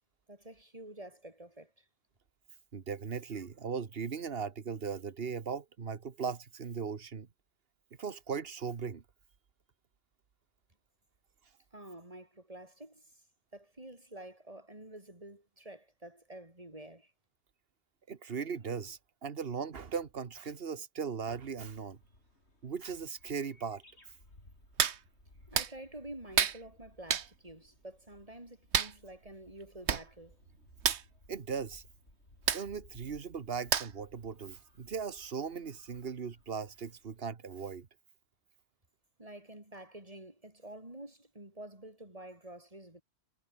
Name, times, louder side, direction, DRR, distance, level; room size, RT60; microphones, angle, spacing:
voice 1, 0.3-1.9 11.7-13.2 13.5-17.1 25.5-30.4 39.2-43.0, right 1 dB, 35° right, 4.7 m, -49 dB
voice 2, 2.7-7.3 8.0-9.0 18.1-22.0 22.6-23.8 31.3-31.8 32.5-37.9, right 6 dB, 65° right, 1.5 m, -38 dB
sound 1, 21.5-37.2, left 1 dB, 85° left, 7.0 m, -62 dB
Hands, 24.8-25.0 25.5-25.7 26.4-26.6 27.1-27.3 28.7-28.9 29.6-29.7 29.9-30.1 30.3-30.5 30.8-31.0 32.5-32.6 33.7-34.1 34.5-34.6, right 8 dB, 90° right, 1.4 m, -29 dB
omnidirectional pair, 1.1 m